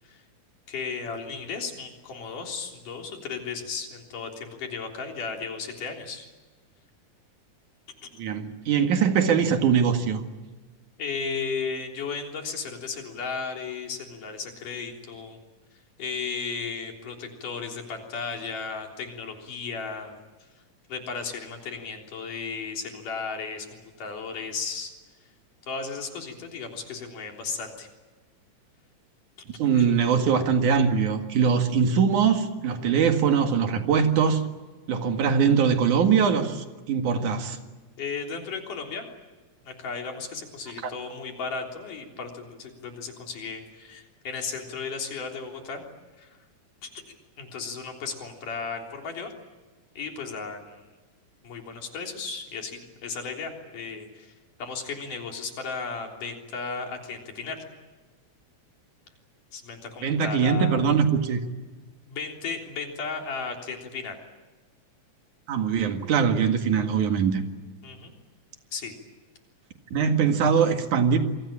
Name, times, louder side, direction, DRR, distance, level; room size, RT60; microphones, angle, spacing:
voice 1, 0.7-6.3 11.0-15.4 16.0-20.1 20.9-23.7 24.0-24.9 25.7-27.9 29.7-29.9 38.0-39.1 39.6-45.8 46.2-46.4 46.8-46.9 47.4-49.3 49.9-50.8 51.4-54.3 54.6-57.6 59.5-60.8 62.1-64.2 67.8-68.1 68.7-68.9, left 5 dB, 85° left, 2 dB, 5.1 m, -35 dB
voice 2, 8.2-10.2 29.6-34.4 34.9-37.6 40.8-40.9 60.0-61.4 65.5-67.4 69.9-71.2, right 6 dB, 75° right, 6 dB, 3.4 m, -22 dB
28.0 x 23.5 x 8.9 m, 1.3 s
omnidirectional pair, 3.6 m